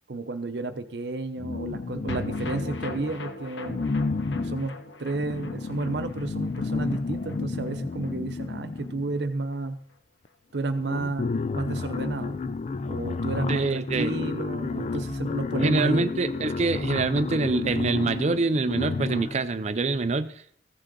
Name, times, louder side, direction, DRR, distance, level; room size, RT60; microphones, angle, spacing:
voice 1, 0.1-3.8 4.3-4.7 5.0-9.8 10.5-11.3 11.5-12.4 12.9-16.1, right 2 dB, 70° right, 9 dB, 0.7 m, -31 dB
sound 1, 1.4-3.2 3.6-9.3 10.2-10.3 10.6-19.5, left 4 dB, 40° left, 0.3 m, -31 dB
sound 2, 2.1-8.5 8.8-8.9 9.2-9.3, left 2 dB, 85° left, 0.9 m, -40 dB
voice 2, 13.5-14.1 15.6-20.3, right 3 dB, 40° right, 11 dB, 0.5 m, -25 dB
14.0 x 6.4 x 3.8 m, 0.63 s
head